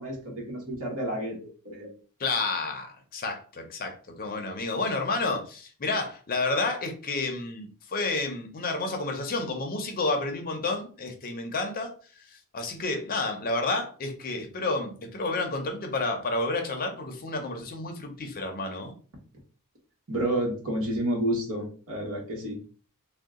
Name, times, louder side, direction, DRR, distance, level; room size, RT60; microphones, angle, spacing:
voice 1, 0.0-1.4 1.6-1.9 20.1-22.6, right 1 dB, 65° right, 1.2 m, -30 dB
voice 2, 2.2-11.9 12.3-18.9, left 3 dB, 40° left, 0.6 m, -30 dB
2.7 x 2.3 x 3.6 m
head